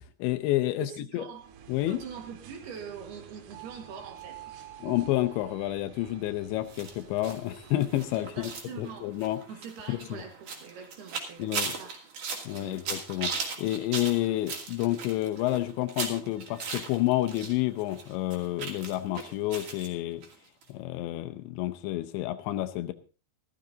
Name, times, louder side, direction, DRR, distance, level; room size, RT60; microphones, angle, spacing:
voice 1, 0.0-1.3 1.7-2.0 4.8-8.5 8.8-9.4 9.9-10.2 11.4-11.7 12.4-13.3 13.6-20.2 20.7-22.9, left 15 dB, 80° left, 9 dB, 2.9 m, -29 dB
voice 2, 0.8-1.5 1.9-5.0 8.2-9.2 9.5-12.0 12.6-12.8, right 6 dB, 65° right, 4 dB, 3.6 m, -44 dB
sound 1, 1.3-8.5, right 10 dB, 90° right, 4.0 m, -49 dB
sound 2, 6.7-17.5 17.8-19.9 20.2-20.3 20.6-20.7, right 5 dB, 50° right, 3.4 m, -38 dB
15.0 x 13.5 x 3.9 m, 0.35 s
omnidirectional pair, 5.4 m